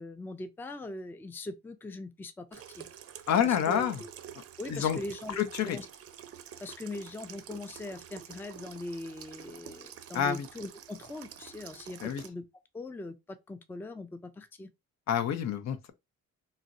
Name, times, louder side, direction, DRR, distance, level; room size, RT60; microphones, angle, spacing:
voice 1, 0.0-2.9 3.4-4.1 4.6-5.9 6.6-12.4 12.7-13.1 13.5-14.7, left 2 dB, 5° left, 0.3 m, -41 dB
Water tap faucet / Sink (filling or washing), 2.5-12.3, right 9 dB, 55° right, 0.6 m, -48 dB
voice 2, 3.3-4.0 4.7-5.0 5.4-5.8 10.1-10.5 12.0-12.2 15.1-15.9, left 9 dB, 65° left, 0.6 m, -28 dB
3.9 x 2.0 x 2.5 m
cardioid pair, 85°, 29 cm